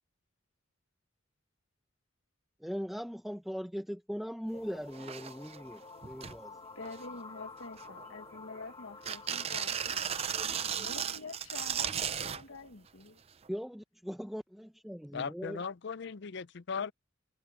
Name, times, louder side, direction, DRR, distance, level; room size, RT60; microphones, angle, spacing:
voice 1, 2.6-6.6 13.5-15.6, equal, ahead, 1.0 m, -40 dB
sound 1, 4.5-11.2, left 3 dB, 25° left, 5.0 m, -50 dB
sound 2, 4.6-4.7 4.9-5.6 6.0-6.4 6.8-7.3 7.8-8.6 9.0-12.4 13.5-13.6, right 8 dB, 30° right, 0.5 m, -35 dB
voice 2, 6.8-13.2, left 3 dB, 80° left, 1.8 m, -47 dB
voice 3, 15.1-16.9, left 6 dB, 60° left, 0.5 m, -38 dB
head